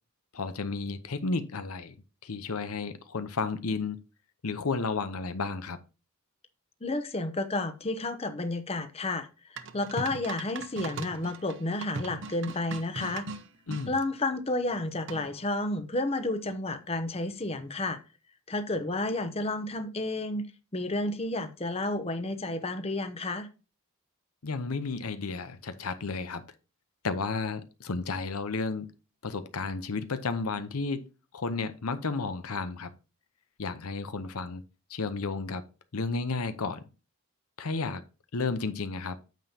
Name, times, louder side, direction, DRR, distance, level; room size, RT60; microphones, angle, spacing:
voice 1, 0.3-2.0 2.2-4.0 4.4-5.8 13.7-14.0 24.4-26.4 27.0-28.9 29.2-31.0 31.3-32.9 33.6-34.6 34.9-35.6 35.9-36.8 37.6-38.0 38.3-39.2, left 4 dB, 90° left, 0.8 m, -32 dB
voice 2, 6.8-13.3 13.9-18.0 18.5-20.4 20.7-23.5, left 2 dB, 30° left, 0.7 m, -31 dB
sound 1, 9.6-13.9 15.1-15.5, right 3 dB, 60° right, 0.8 m, -39 dB
9.2 x 7.1 x 2.8 m
head